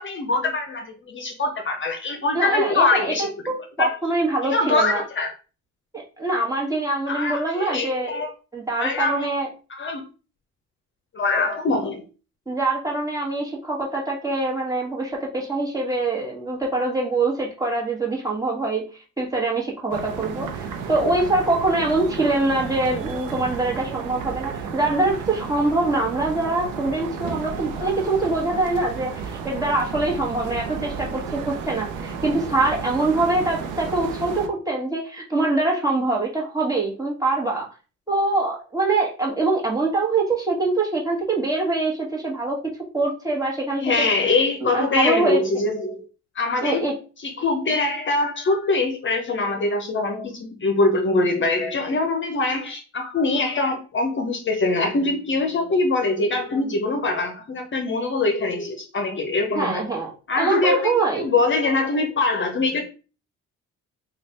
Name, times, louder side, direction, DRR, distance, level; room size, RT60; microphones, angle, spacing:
voice 1, 0.0-3.3 3.8-4.0 4.5-5.3 7.1-8.3 8.8-9.3 9.7-10.0 11.1-12.0 43.8-46.0 46.4-46.9 47.2-59.8 60.3-62.8, left 3 dB, 40° left, 0.8 m, -23 dB
voice 2, 2.3-5.0 5.9-8.1 8.5-9.5 12.5-37.7 38.1-44.1 44.6-45.4 46.6-46.9 59.5-61.3, right 2 dB, 10° right, 1.5 m, -24 dB
sound 1, 19.9-34.5, right 6 dB, 90° right, 0.7 m, -33 dB
3.1 x 2.4 x 4.2 m
cardioid pair, 90°, 30 cm